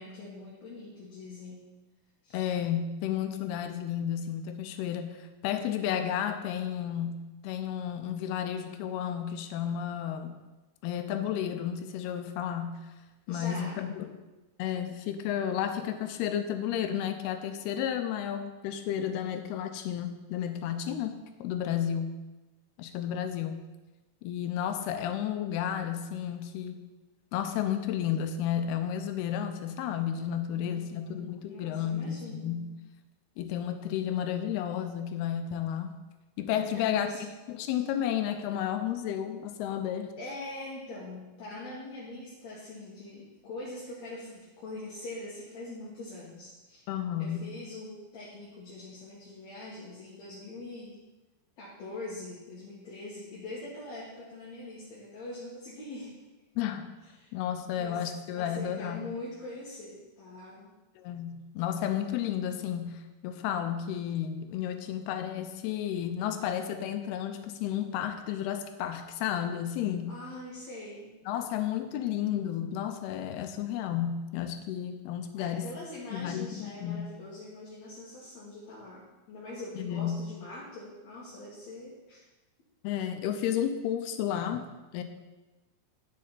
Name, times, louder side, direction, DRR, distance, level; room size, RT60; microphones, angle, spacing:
voice 1, 0.0-1.7 2.2-2.4 13.3-13.8 30.5-32.6 36.7-37.3 37.7-37.8 40.2-46.8 47.2-51.0 51.6-56.2 57.2-57.3 57.8-58.1 58.3-60.7 70.1-71.1 75.4-82.3, left 2 dB, 55° left, -7 dB, 2.3 m, -43 dB
voice 2, 2.3-10.3 10.8-12.8 13.3-14.2 14.6-22.2 22.8-23.6 24.2-26.8 27.3-32.7 33.4-35.9 36.4-37.1 37.5-40.1 46.9-47.4 56.6-56.9 57.3-59.1 61.0-70.1 71.3-75.7 76.1-77.0 79.8-80.3 82.8-84.6 84.9-85.0, left 9 dB, 85° left, 8 dB, 2.6 m, -32 dB
9.8 x 7.7 x 4.1 m, 1.1 s
omnidirectional pair, 4.6 m